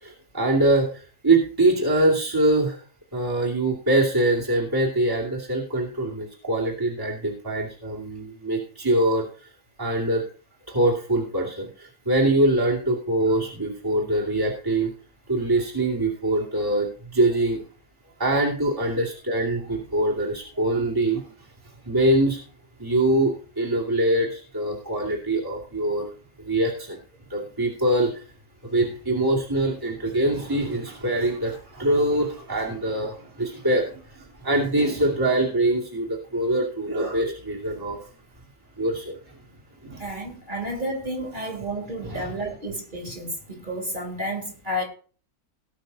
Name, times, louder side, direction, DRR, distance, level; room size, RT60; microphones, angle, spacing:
voice 1, 0.0-2.8 3.1-9.3 9.8-10.2 10.7-14.9 15.3-17.6 18.2-21.2 21.8-22.4 22.8-26.1 26.4-27.0 27.3-28.2 28.6-38.0 38.8-39.3 39.8-40.1 42.0-42.4, right 1 dB, 15° right, -2 dB, 2.6 m, -23 dB
voice 2, 40.0-44.8, equal, 30° right, 1 dB, 3.3 m, -31 dB
18.5 x 6.2 x 4.0 m, 0.39 s
omnidirectional pair, 1.6 m